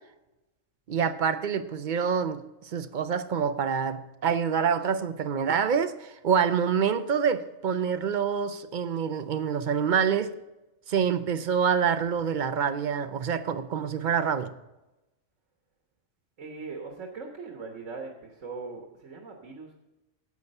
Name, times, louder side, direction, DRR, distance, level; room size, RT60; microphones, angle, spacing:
voice 1, 0.9-2.4 2.7-10.3 10.9-14.5, right 7 dB, 50° right, 0.6 m, -26 dB
voice 2, 16.4-19.7, right 4 dB, 70° right, 1.7 m, -40 dB
11.0 x 8.4 x 5.4 m
omnidirectional pair, 1.4 m